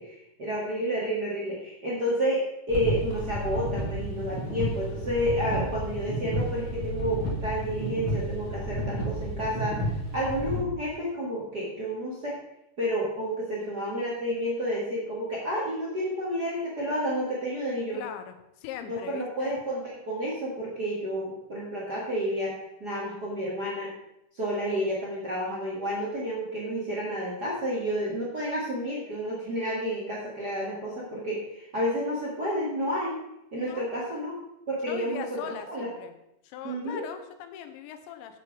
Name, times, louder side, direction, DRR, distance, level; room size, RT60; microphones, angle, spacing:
voice 1, 0.0-9.8 10.1-12.4 12.8-18.0 18.8-23.9 24.3-33.2 33.5-34.4 34.7-35.9 36.6-37.0, equal, 75° right, -4 dB, 0.9 m, -30 dB
sound 1, 2.7-10.6, equal, 45° left, 1.8 m, -31 dB
voice 2, 17.9-19.5 33.5-33.9 34.9-36.1 36.4-38.4, left 9 dB, 90° left, 8 dB, 3.2 m, -40 dB
9.6 x 7.6 x 5.2 m, 0.84 s
omnidirectional pair, 5.2 m